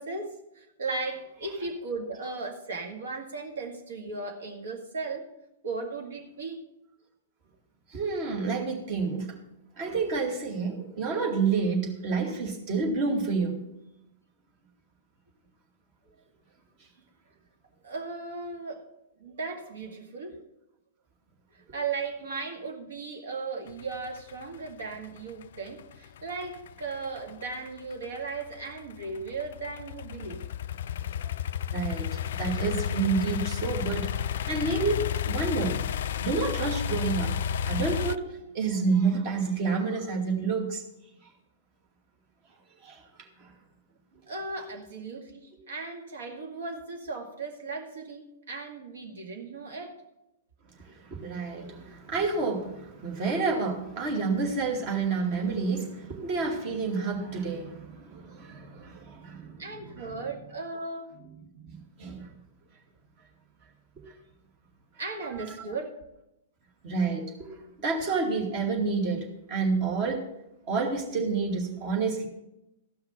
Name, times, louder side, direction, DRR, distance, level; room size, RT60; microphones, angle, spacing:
voice 1, 0.0-5.3 5.6-6.6 17.8-18.8 19.2-20.4 21.5-30.4 44.3-50.0 59.6-61.1 65.0-65.9, right 3 dB, 65° right, 3 dB, 1.9 m, -36 dB
voice 2, 7.9-9.4 9.8-13.6 31.7-34.1 34.4-35.8 36.2-37.3 37.6-40.8 42.8-43.0 43.4-43.5 50.8-59.7 60.0-60.1 61.6-62.3 64.0-64.1 66.8-67.5 67.8-70.2 70.7-72.3, right 4 dB, 40° right, 1 dB, 2.4 m, -29 dB
sound 1, 23.7-38.2, left 9 dB, 55° left, 0.3 m, -32 dB
14.5 x 5.8 x 5.8 m, 0.88 s
figure-of-eight pair, 105°, 0 cm